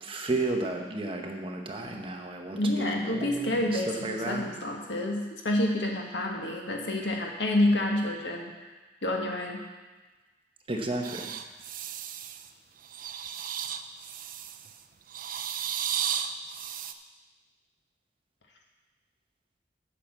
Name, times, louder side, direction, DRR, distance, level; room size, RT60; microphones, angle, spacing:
voice 1, 0.0-4.4 10.7-11.3, right 2 dB, 30° right, 2 dB, 0.9 m, -33 dB
voice 2, 2.6-8.5 9.0-9.6, left 1 dB, 70° left, 1 dB, 1.5 m, -28 dB
sound 1, 11.0-12.5 12.8-14.7 15.1-16.9, right 9 dB, 50° right, 0.5 m, -34 dB
8.5 x 5.9 x 7.3 m, 1.2 s
head